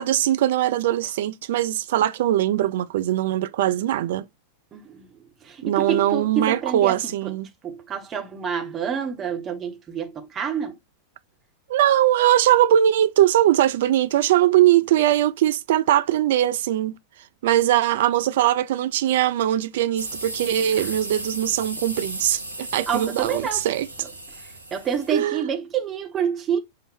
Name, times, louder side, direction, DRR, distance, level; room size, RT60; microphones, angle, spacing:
voice 1, 0.0-4.2 5.6-7.5 11.7-16.9 17.4-23.9 25.1-25.4, right 12 dB, 55° right, 0.3 m, -21 dB
voice 2, 4.7-5.1 5.4-7.3 7.6-10.8 20.8-21.0 22.9-23.6 24.0-24.1 24.4-26.6, right 7 dB, 25° right, 0.8 m, -28 dB
sound 1, 20.0-25.2, right 1 dB, 90° left, 0.8 m, -35 dB
5.6 x 2.0 x 3.3 m
figure-of-eight pair, 90°, 0 cm